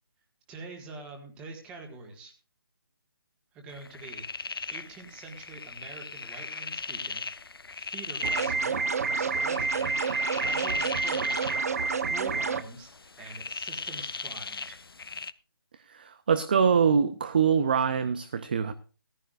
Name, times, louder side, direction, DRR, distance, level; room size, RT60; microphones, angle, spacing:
voice 1, 0.5-2.3 3.5-7.2 7.7-8.8 9.1-11.6 12.1-14.8, right 3 dB, 10° right, 1.7 m, -45 dB
sound 1, 3.7-15.3, left 4 dB, 85° left, 0.9 m, -39 dB
sound 2, 8.2-12.6, right 4 dB, 40° right, 0.8 m, -28 dB
voice 2, 15.9-18.7, right 6 dB, 25° right, 0.5 m, -24 dB
15.0 x 14.5 x 2.4 m
hypercardioid pair, 170°, 12 cm